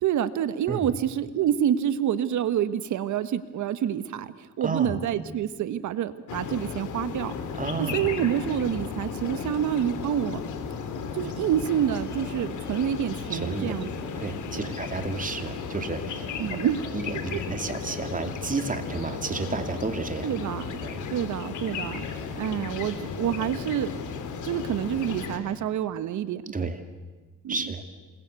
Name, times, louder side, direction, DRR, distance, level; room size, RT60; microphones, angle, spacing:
voice 1, 0.0-7.3 7.8-10.4 11.1-14.1 14.5-14.7 16.4-16.8 20.2-20.7 21.1-22.1 22.4-23.9 24.4-26.7 27.4-27.7, right 10 dB, 75° right, 13 dB, 1.3 m, -27 dB
voice 2, 4.6-5.0 7.6-8.1 13.3-13.7 14.2-16.3 16.9-20.3 20.8-21.1 26.5-26.8 27.5-27.8, right 3 dB, 25° right, 7 dB, 2.7 m, -31 dB
sound 1, 6.3-25.4, left 5 dB, 75° left, 3.3 m, -35 dB
27.5 x 21.5 x 8.3 m, 1.3 s
cardioid pair, 90°, 30 cm